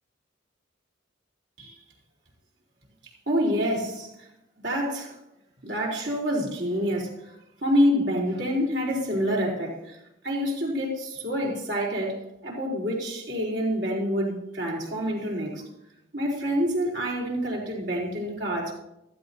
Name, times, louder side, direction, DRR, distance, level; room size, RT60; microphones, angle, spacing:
voice 1, 3.3-4.3 4.6-5.2 5.6-10.0 10.2-15.7 16.1-18.7, equal, 60° right, -3 dB, 4.1 m, -27 dB
15.0 x 14.0 x 2.8 m, 0.85 s
head